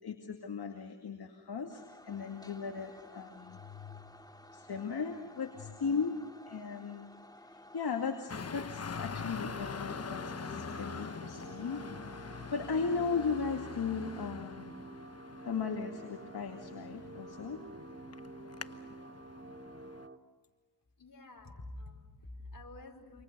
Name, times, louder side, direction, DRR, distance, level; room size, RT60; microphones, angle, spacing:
voice 1, 0.0-4.2 4.5-7.2 7.5-11.8 12.1-14.7 15.4-17.6, left 5 dB, 70° left, 3 dB, 2.3 m, -37 dB
sound 1, 1.7-14.3, left 1 dB, 10° left, 2.2 m, -55 dB
Traffic noise roadway noise, 8.3-20.1, left 5 dB, 40° left, 1.1 m, -44 dB
sound 2, 9.4-20.2, right 2 dB, 30° right, 2.6 m, -49 dB
voice 2, 21.0-23.2, left 2 dB, 55° left, 3 dB, 4.8 m, -48 dB
28.5 x 27.0 x 6.8 m, 1.4 s
cardioid pair, 55°, 40 cm